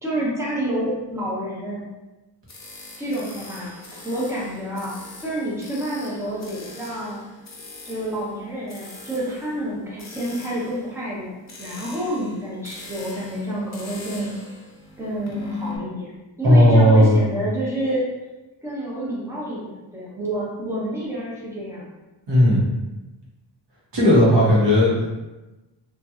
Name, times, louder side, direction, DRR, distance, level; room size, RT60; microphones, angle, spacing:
voice 1, 0.0-1.8 3.0-3.7 4.0-4.9 5.2-7.2 7.8-11.3 11.6-14.3 15.0-18.0 18.6-21.9, right 1 dB, 5° right, -6 dB, 0.8 m, -28 dB
sound 1, 2.5-15.8, left 3 dB, 40° left, 0.7 m, -41 dB
voice 2, 16.4-17.2 22.3-22.6 23.9-25.0, equal, 70° right, -7 dB, 1.3 m, -15 dB
2.9 x 2.7 x 2.4 m, 1.1 s
wide cardioid pair, 100°, 44 cm